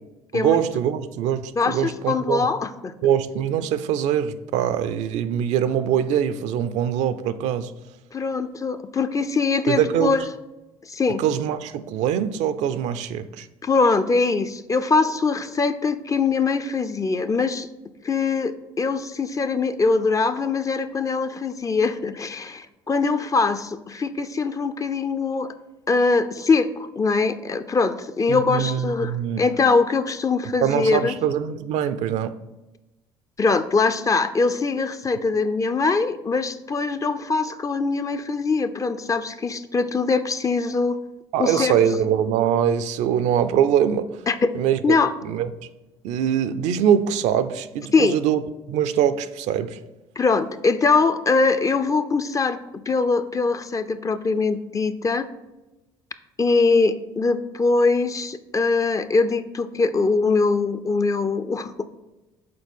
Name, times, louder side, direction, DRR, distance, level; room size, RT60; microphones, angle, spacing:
voice 1, 0.3-2.5 3.0-7.7 9.7-10.2 11.2-13.5 28.3-29.4 30.6-32.3 41.3-44.2 44.5-44.8 45.2-45.5 46.0-48.4 48.7-49.8, right 9 dB, 65° right, 12 dB, 0.5 m, -23 dB
voice 2, 1.6-2.9 8.1-10.2 10.9-11.2 13.6-17.7 18.0-25.5 25.9-31.1 33.4-41.0 41.4-41.9 44.3-44.5 44.8-45.1 47.9-48.2 50.2-55.3 56.4-61.9, left 4 dB, 25° left, 11 dB, 0.5 m, -22 dB
6.7 x 4.3 x 5.2 m, 1.0 s
hypercardioid pair, 65°, 13 cm